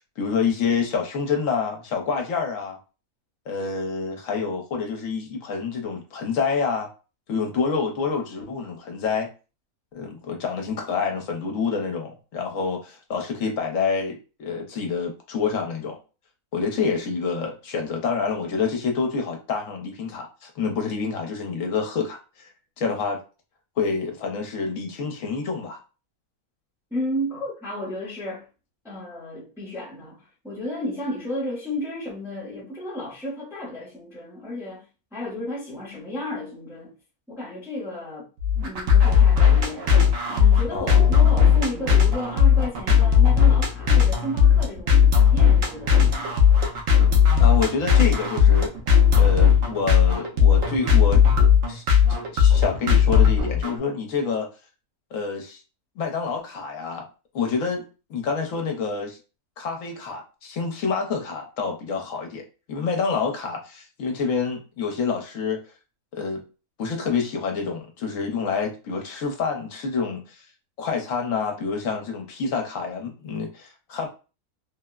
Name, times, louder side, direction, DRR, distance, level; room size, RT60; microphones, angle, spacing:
voice 1, 0.0-2.8 3.5-6.9 7.3-9.3 9.9-16.0 16.5-22.2 22.8-23.2 23.8-25.8 40.7-41.2 47.4-48.7 49.1-51.2 51.7-51.8 52.3-54.5 55.1-55.6 56.0-57.1 57.3-59.2 59.6-65.6 66.1-66.4 66.8-70.4 70.8-74.1, left 5 dB, 65° left, 1.1 m, -27 dB
voice 2, 26.9-28.5 28.8-34.8 35.1-36.9 37.3-38.3 38.6-39.9 40.3-46.4, left 1 dB, 5° right, 0.5 m, -33 dB
sound 1, 38.4-53.8, left 7 dB, 70° right, 1.0 m, -17 dB
3.3 x 2.0 x 2.2 m
omnidirectional pair, 1.5 m